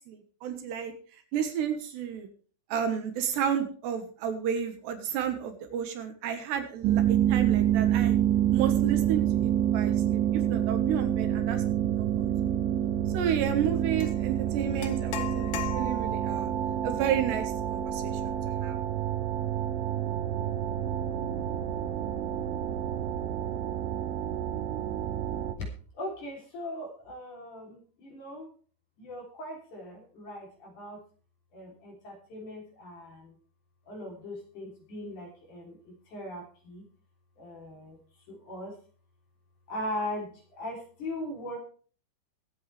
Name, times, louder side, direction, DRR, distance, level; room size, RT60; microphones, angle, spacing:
voice 1, 0.1-0.9 1.3-2.3 2.7-8.2 8.5-10.2 10.5-12.3 13.1-16.5 16.8-18.4 18.6-18.8, right 8 dB, 70° right, 7 dB, 3.3 m, -32 dB
sound 1, 6.8-25.5, right 10 dB, 85° right, 3.4 m, -28 dB
sound 2, 14.0-14.2 14.8-16.3, left 12 dB, 80° left, 1.9 m, -37 dB
sound 3, 15.7-25.5, right 8 dB, 45° right, 1.2 m, -41 dB
voice 2, 25.9-28.5 29.0-31.0 31.5-33.3 33.9-36.8 37.4-38.0 38.3-38.8 39.7-41.6, left 1 dB, 45° left, 0 dB, 4.4 m, -39 dB
23.5 x 8.0 x 3.3 m, 0.43 s
omnidirectional pair, 5.2 m